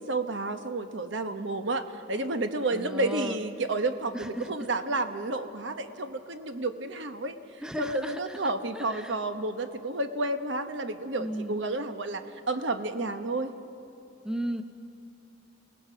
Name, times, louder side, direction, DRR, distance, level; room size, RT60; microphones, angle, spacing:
voice 1, 0.0-7.4 7.8-13.5, right 2 dB, 65° right, 9 dB, 1.0 m, -31 dB
voice 2, 2.7-3.4 4.1-4.5 7.6-9.2 11.2-11.6 14.2-14.6, equal, 5° right, 7 dB, 0.7 m, -35 dB
28.5 x 17.5 x 5.7 m, 2.6 s
head